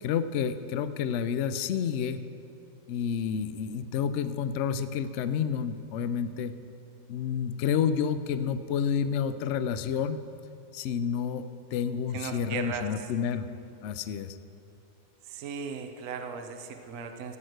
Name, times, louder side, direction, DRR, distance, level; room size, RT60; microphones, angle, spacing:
voice 1, 0.0-2.2 2.9-6.5 7.1-10.2 10.7-13.5 13.8-14.4, left 7 dB, 85° left, 12 dB, 0.6 m, -29 dB
voice 2, 12.1-13.1 15.2-17.4, right 6 dB, 60° right, 6 dB, 1.0 m, -37 dB
13.0 x 6.4 x 7.9 m, 2.8 s
omnidirectional pair, 1.9 m